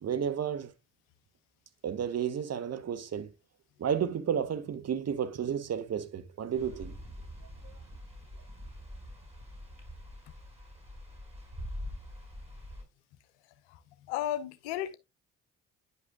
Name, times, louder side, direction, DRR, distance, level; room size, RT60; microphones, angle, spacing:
voice 1, 0.0-0.7 1.8-3.3 3.8-7.0 7.6-7.7, right 8 dB, 50° right, 1.1 m, -32 dB
sound 1, 6.5-12.8, left 1 dB, 20° right, 4.8 m, -44 dB
voice 2, 14.1-14.9, left 12 dB, 85° left, 0.8 m, -33 dB
10.0 x 5.4 x 2.3 m
hypercardioid pair, 50°, 33 cm